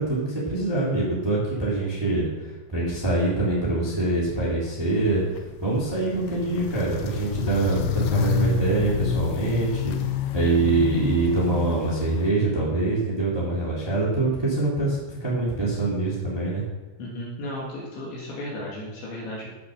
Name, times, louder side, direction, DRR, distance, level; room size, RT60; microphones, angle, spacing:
voice 1, 0.0-2.3 2.7-9.9 10.3-16.6, right 2 dB, 10° right, -6 dB, 1.3 m, -24 dB
Walk footsteps, 4.7-12.3, left 7 dB, 80° left, 3.3 m, -29 dB
voice 2, 17.0-19.5, left 1 dB, 65° left, -4 dB, 4.2 m, -35 dB
16.0 x 6.9 x 6.5 m, 1.2 s
omnidirectional pair, 5.8 m